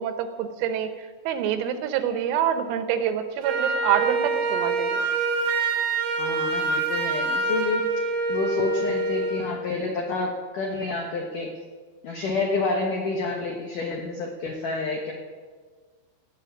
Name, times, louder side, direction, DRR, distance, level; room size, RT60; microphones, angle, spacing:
voice 1, 0.0-5.1, right 9 dB, 90° right, 8 dB, 3.8 m, -26 dB
Wind instrument woodwind instrument, 3.4-9.5, right 3 dB, 65° right, 4.3 m, -25 dB
voice 2, 6.2-7.8 8.3-11.5 12.0-15.1, left 3 dB, 85° left, 1 dB, 1.8 m, -29 dB
18.5 x 7.5 x 8.7 m, 1.5 s
omnidirectional pair, 5.9 m